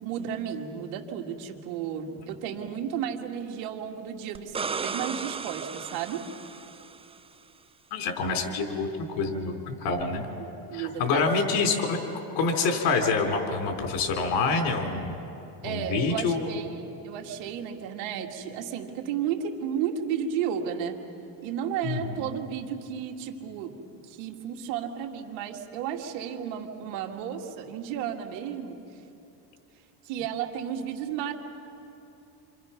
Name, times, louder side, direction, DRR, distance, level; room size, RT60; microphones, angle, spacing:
voice 1, 0.0-6.3 10.1-11.3 15.6-21.0 21.4-23.7 24.0-28.8 30.0-31.3, right 8 dB, 85° right, 2 dB, 2.3 m, -33 dB
sound 1, 4.3-7.2 10.0-10.1, right 5 dB, 15° right, 0.5 m, -35 dB
voice 2, 7.9-8.9 9.2-9.6 9.8-10.3 10.7-12.0 12.4-15.2 15.6-16.5 21.8-22.2, left 4 dB, 70° left, 4 dB, 4.0 m, -26 dB
28.0 x 25.5 x 5.9 m, 2.8 s
cardioid pair, 115°, 44 cm